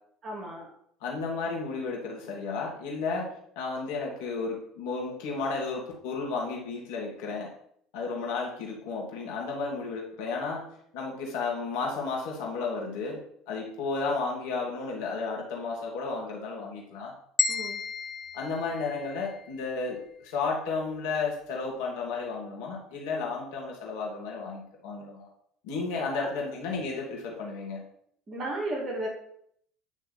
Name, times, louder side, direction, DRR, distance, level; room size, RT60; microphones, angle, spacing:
voice 1, 0.2-0.7 17.5-17.8 25.9-26.3 28.3-29.1, right 1 dB, 40° right, -1 dB, 2.0 m, -34 dB
voice 2, 1.0-3.3 3.6-7.5 7.9-10.7 10.9-13.2 13.5-17.1 18.3-25.3 25.6-27.8, left 4 dB, 70° left, -1 dB, 1.9 m, -33 dB
sound 1, 17.4-19.6, left 5 dB, 30° left, 0.6 m, -32 dB
9.1 x 3.1 x 4.1 m, 0.69 s
hypercardioid pair, 70°, 0 cm